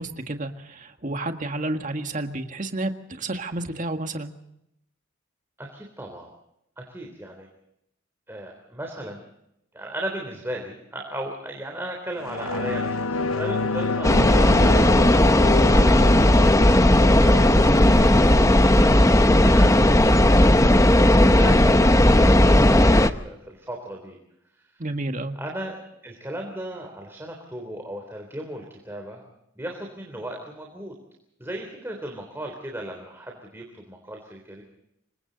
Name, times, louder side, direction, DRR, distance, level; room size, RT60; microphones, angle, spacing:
voice 1, 0.0-2.9 3.2-4.3 24.8-25.4, right 2 dB, 40° right, 6 dB, 1.8 m, -30 dB
voice 2, 5.6-6.3 6.8-7.5 8.3-9.2 9.7-15.1 15.7-20.2 20.9-24.2 24.6-24.8 25.4-25.8 26.0-29.2 29.6-31.0 31.4-34.6, right 1 dB, 10° right, 1 dB, 3.5 m, -36 dB
sound 1, 12.2-21.2 21.6-21.7, left 3 dB, 90° left, 0.8 m, -30 dB
sound 2, 14.0-23.1, left 1 dB, 15° left, 0.9 m, -16 dB
27.0 x 24.5 x 4.1 m, 0.80 s
head